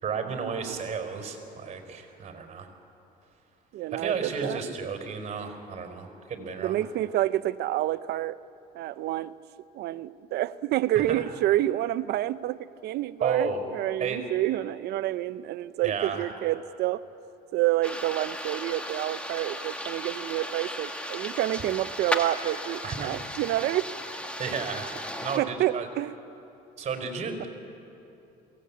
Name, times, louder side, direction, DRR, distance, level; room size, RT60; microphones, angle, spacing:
voice 1, 0.0-2.7 3.9-6.8 10.9-11.2 13.2-13.6 14.0-14.2 15.8-16.3 22.8-23.1 24.4-25.9 26.8-27.5, right 5 dB, 40° right, 5 dB, 4.4 m, -33 dB
voice 2, 3.7-4.6 6.6-8.4 8.7-9.3 9.7-17.0 17.5-23.9 25.4-26.1, right 14 dB, 75° right, 16 dB, 0.6 m, -28 dB
sound 1, 17.8-25.4, equal, 5° left, 1.9 m, -35 dB
22.5 x 17.5 x 8.6 m, 2.9 s
cardioid pair, 110°, 17 cm